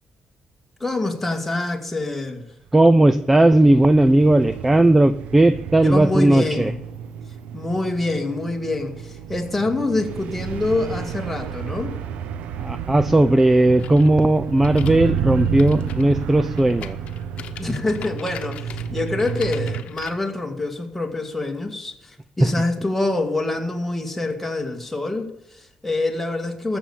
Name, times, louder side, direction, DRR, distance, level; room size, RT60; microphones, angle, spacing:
voice 1, 0.8-2.4 5.8-6.7 7.5-11.9 17.6-26.8, left 2 dB, 5° left, 2 dB, 2.0 m, -26 dB
voice 2, 2.7-6.7 12.6-17.0 22.4-22.5, right 1 dB, 10° right, 14 dB, 0.5 m, -16 dB
sound 1, 2.9-19.8, right 8 dB, 85° right, 0.8 m, -31 dB
sound 2, 13.8-20.1, left 10 dB, 70° left, 1.0 m, -40 dB
13.5 x 7.1 x 8.6 m, 0.84 s
cardioid pair, 130°, 2 cm